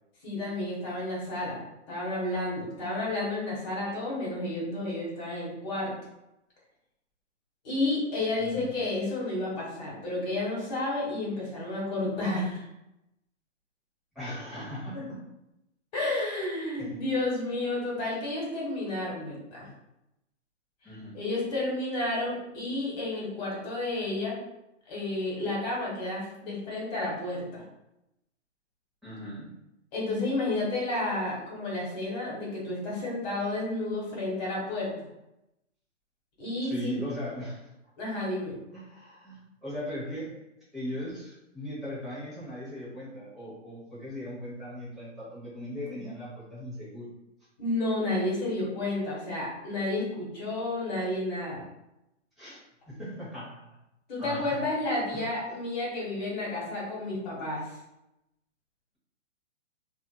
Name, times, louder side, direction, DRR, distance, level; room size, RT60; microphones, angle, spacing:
voice 1, 0.2-1.6 1.9-5.9 7.6-12.7 14.9-15.0 15.9-19.7 21.1-24.4 24.9-27.6 29.9-35.1 36.4-36.9 38.0-38.6 45.9-46.1 47.6-51.6 54.1-57.8, left 2 dB, 35° left, -5 dB, 1.3 m, -31 dB
voice 2, 8.4-8.7 14.1-15.2 16.8-17.0 20.8-21.2 29.0-29.6 36.6-37.7 38.7-40.4 40.7-47.1 52.4-52.6 52.9-53.7 54.2-54.6 55.1-55.2, equal, ahead, -12 dB, 0.9 m, -38 dB
2.6 x 2.5 x 2.2 m, 0.88 s
hypercardioid pair, 145°, 37 cm